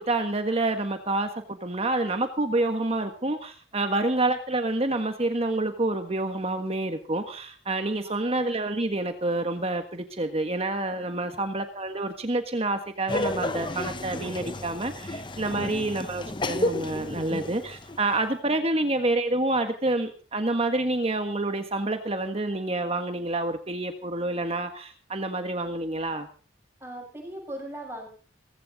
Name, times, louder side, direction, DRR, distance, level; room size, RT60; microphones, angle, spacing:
voice 1, 0.0-26.3, right 2 dB, 30° right, 7 dB, 1.5 m, -28 dB
Laughter, 13.1-18.2, left 1 dB, 25° left, 1.0 m, -32 dB
voice 2, 26.8-28.1, right 1 dB, 15° right, 0 dB, 7.2 m, -41 dB
18.0 x 16.0 x 4.1 m, 0.39 s
head